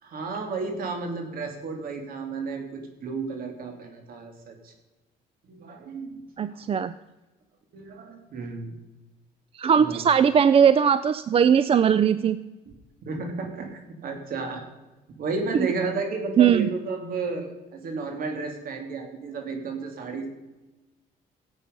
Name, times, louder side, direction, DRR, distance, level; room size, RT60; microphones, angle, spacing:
voice 1, 0.0-4.7 5.5-6.6 7.7-8.7 9.8-10.0 13.0-14.6 15.2-20.3, right 4 dB, 60° right, 4 dB, 2.9 m, -32 dB
voice 2, 6.4-6.9 9.5-12.4 15.5-15.7 16.4-16.7, right 7 dB, 35° right, 14 dB, 0.4 m, -19 dB
16.0 x 8.2 x 5.4 m, 1.1 s
cardioid pair, 110°, 17 cm